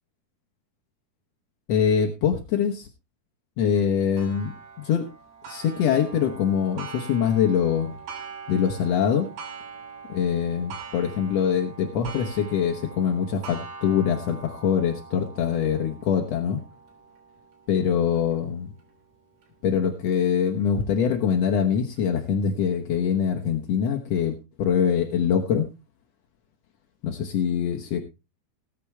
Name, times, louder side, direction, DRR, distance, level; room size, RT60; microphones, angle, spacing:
voice 1, 1.7-2.9 3.6-5.1 5.5-7.9 8.5-9.3 10.1-16.6 17.7-18.7 19.6-25.7 27.0-28.0, left 7 dB, 70° left, 4 dB, 1.5 m, -24 dB
Clock, 4.2-19.5 20.1-20.2 20.7-20.8 21.8-21.9, right 5 dB, 90° right, 5.1 m, -43 dB
19.0 x 8.5 x 3.3 m, 0.26 s
omnidirectional pair, 4.6 m